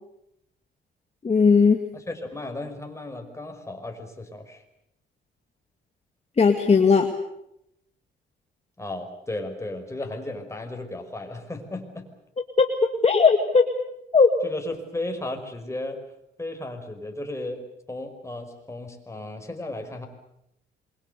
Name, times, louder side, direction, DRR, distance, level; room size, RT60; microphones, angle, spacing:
voice 1, 1.2-1.8 6.4-7.1 12.6-12.7 13.0-13.7 14.1-14.3, left 5 dB, 30° left, 5 dB, 2.0 m, -17 dB
voice 2, 1.9-4.6 8.8-12.1 14.4-16.0 16.4-20.1, left 2 dB, 15° left, 4 dB, 5.3 m, -35 dB
27.5 x 23.0 x 6.9 m, 0.80 s
cardioid pair, 90°, 20 cm